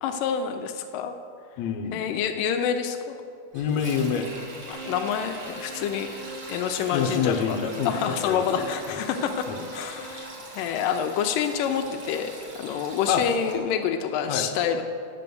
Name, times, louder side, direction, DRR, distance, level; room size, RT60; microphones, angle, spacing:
voice 1, 0.0-1.1 1.9-3.2 4.7-6.1 6.5-7.6 7.9-14.8, left 8 dB, 90° left, 6 dB, 2.3 m, -27 dB
voice 2, 1.6-2.0 3.5-4.3 6.9-9.0 9.5-9.6 13.1-13.2 14.3-14.5, left 7 dB, 75° left, 4 dB, 1.8 m, -27 dB
Sink (filling or washing), 3.5-13.6, right 2 dB, 45° right, 1.7 m, -43 dB
sound 1, 4.7-5.9 6.2-7.4 7.7-8.8 9.1-10.3, right 2 dB, 80° right, 4.2 m, -41 dB
9.5 x 7.7 x 6.9 m, 2.4 s
omnidirectional pair, 3.8 m